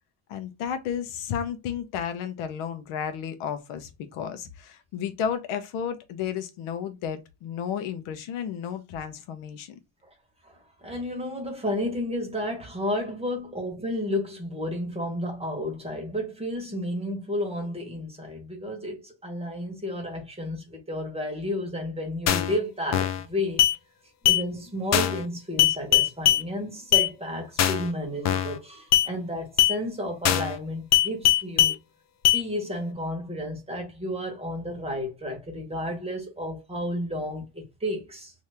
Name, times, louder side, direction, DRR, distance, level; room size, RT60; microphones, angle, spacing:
voice 1, 0.3-9.8, left 8 dB, 85° left, 0.9 m, -32 dB
voice 2, 10.4-23.7 24.2-31.8 32.3-38.3, left 1 dB, 10° right, 1.2 m, -32 dB
sound 1, 22.3-22.6 22.9-23.2 23.6-23.8 24.3-24.4 24.9-25.2 25.6-26.4 26.9-27.1 27.6-27.9 28.3-28.6 28.9-29.1 29.6-29.8 30.3-30.6 30.9-31.8 32.3-32.4, left 12 dB, 40° left, 0.4 m, -20 dB
2.8 x 2.7 x 3.4 m
cardioid pair, 135°, 48 cm